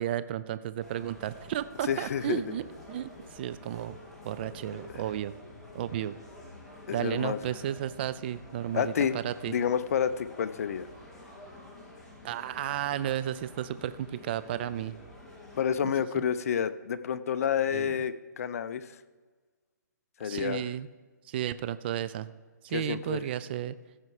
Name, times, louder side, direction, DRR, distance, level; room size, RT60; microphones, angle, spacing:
voice 1, 0.0-2.6 2.9-4.0 4.2-5.3 5.7-6.2 6.9-9.6 12.2-14.9 15.8-15.9 17.7-18.0 20.2-20.9 21.3-22.3 22.6-23.8, right 11 dB, 35° right, 14 dB, 0.4 m, -33 dB
sound 1, 0.8-15.6, left 2 dB, 5° left, 1.7 m, -49 dB
voice 2, 1.9-2.4 6.9-7.4 8.7-9.2 9.5-10.9 15.6-18.9 20.2-20.6 22.7-23.2, left 8 dB, 50° left, 13 dB, 0.6 m, -29 dB
14.5 x 5.6 x 4.8 m, 1.4 s
hypercardioid pair, 150°, 10 cm